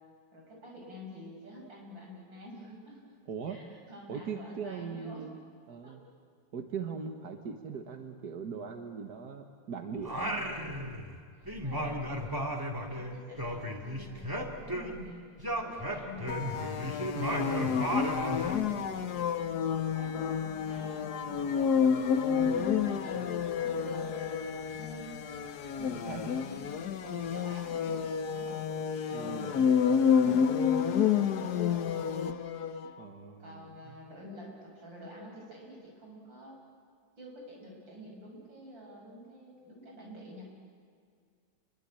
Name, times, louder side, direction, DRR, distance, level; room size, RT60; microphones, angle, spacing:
voice 1, 0.3-3.1 3.5-5.3 5.8-5.9 11.4-12.4 12.9-15.3 15.5-21.8 22.9-23.2 23.5-25.2 25.8-28.6 29.2-29.8 30.2-32.4 33.4-36.6 37.2-40.5, equal, 85° right, -1 dB, 7.8 m, -48 dB
voice 2, 3.3-3.6 4.1-5.4 5.7-6.0 6.5-10.6 18.7-19.2 22.4-23.3 25.9-26.4 29.1-29.7 30.2-30.6 33.0-33.9, right 6 dB, 60° right, 5 dB, 1.9 m, -41 dB
Singing, 10.0-11.2 11.5-15.1 15.4-18.6, equal, 10° right, 2.4 m, -35 dB
sound 1, 16.3-32.9, left 7 dB, 60° left, 1.4 m, -29 dB
28.5 x 23.0 x 8.8 m, 2.1 s
omnidirectional pair, 2.0 m